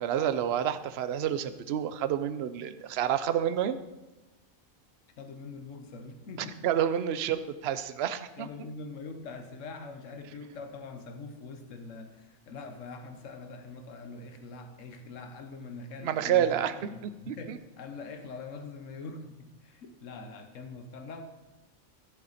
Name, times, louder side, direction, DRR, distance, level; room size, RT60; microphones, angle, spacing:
voice 1, 0.0-3.8 6.6-8.5 16.0-17.6, right 10 dB, 60° right, 12 dB, 0.8 m, -29 dB
voice 2, 5.2-6.5 8.4-19.2 19.5-21.2, left 4 dB, 65° left, 7 dB, 1.4 m, -43 dB
14.0 x 8.4 x 4.1 m, 1.1 s
omnidirectional pair, 1.5 m